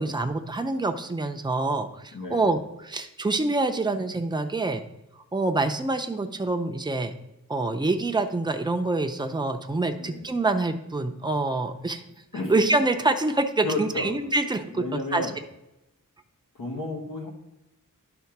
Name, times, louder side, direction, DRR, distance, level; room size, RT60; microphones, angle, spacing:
voice 1, 0.0-2.6 2.8-4.8 5.3-7.1 7.5-12.0 12.5-14.8 15.1-15.3, right 2 dB, 15° right, 6 dB, 0.6 m, -26 dB
voice 2, 2.1-2.5 10.0-10.3 12.3-12.5 13.6-14.2 14.7-15.4 16.5-17.3, left 2 dB, 85° left, 1 dB, 1.7 m, -32 dB
10.5 x 3.7 x 5.9 m, 0.92 s
wide cardioid pair, 120°, 32 cm